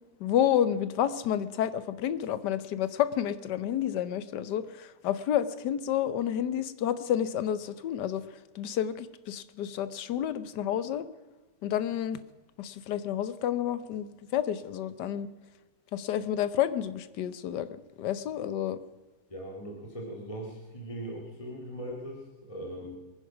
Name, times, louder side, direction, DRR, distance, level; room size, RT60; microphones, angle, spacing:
voice 1, 0.2-8.2 8.5-11.1 11.6-12.2 12.6-15.3 15.9-17.7 18.0-18.8, left 10 dB, 75° left, 14 dB, 1.4 m, -30 dB
voice 2, 19.3-23.0, right 1 dB, 20° left, -1 dB, 2.1 m, -40 dB
22.0 x 10.0 x 6.0 m, 1.2 s
omnidirectional pair, 1.9 m